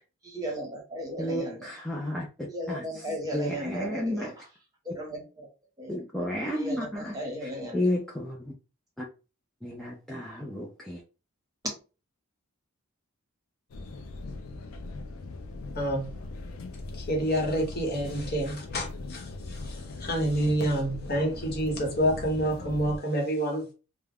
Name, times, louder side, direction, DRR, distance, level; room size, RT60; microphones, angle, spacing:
voice 1, 0.2-1.7 2.5-4.5 4.8-5.5 5.8-6.0 6.5-7.9 11.6-11.7, equal, 15° right, 0.9 m, -35 dB
voice 2, 1.2-2.3 2.7-2.8 3.3-4.3 5.9-7.2 7.7-8.4 9.0-9.1 9.6-11.0, left 1 dB, ahead, 0.3 m, -32 dB
sound 1, 13.7-23.0, left 2 dB, 70° left, 0.4 m, -40 dB
voice 3, 15.7-16.1 16.9-23.7, right 1 dB, 45° left, 0.9 m, -28 dB
2.3 x 2.1 x 3.3 m
head